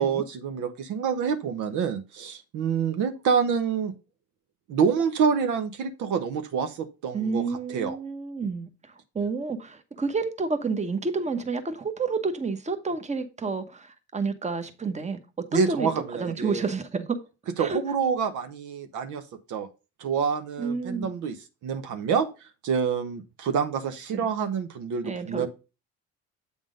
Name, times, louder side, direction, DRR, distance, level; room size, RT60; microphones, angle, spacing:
voice 1, 0.0-3.9 4.7-8.0 15.5-16.7 17.6-19.2 19.5-19.7 20.0-21.4 21.6-22.3 22.6-25.5, right 6 dB, 65° right, 0.9 m, -27 dB
voice 2, 7.1-17.1 17.6-17.8 20.6-21.1 24.1-24.3 25.0-25.5, right 4 dB, 20° right, 1.1 m, -30 dB
7.9 x 3.6 x 5.1 m
supercardioid pair, 65°, 32 cm